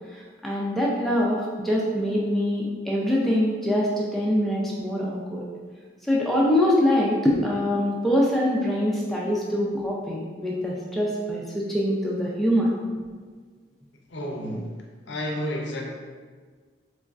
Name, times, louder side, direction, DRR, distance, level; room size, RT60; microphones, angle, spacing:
voice 1, 0.1-5.4 6.0-12.7, equal, ahead, -5 dB, 0.3 m, -24 dB
voice 2, 14.1-14.7 15.1-15.8, equal, 70° left, 0 dB, 0.5 m, -30 dB
3.4 x 3.0 x 2.4 m, 1.5 s
head